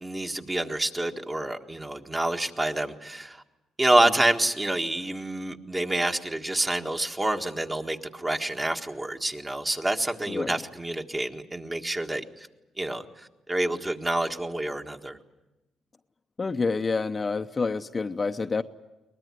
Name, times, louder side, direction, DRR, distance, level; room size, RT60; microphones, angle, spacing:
voice 1, 0.0-3.4 3.8-12.5 12.8-15.2, right 1 dB, 20° right, 4 dB, 1.7 m, -27 dB
voice 2, 16.4-18.6, left 4 dB, 30° left, 7 dB, 0.8 m, -28 dB
23.0 x 20.0 x 9.6 m, 1.0 s
cardioid pair, 90°, 0 cm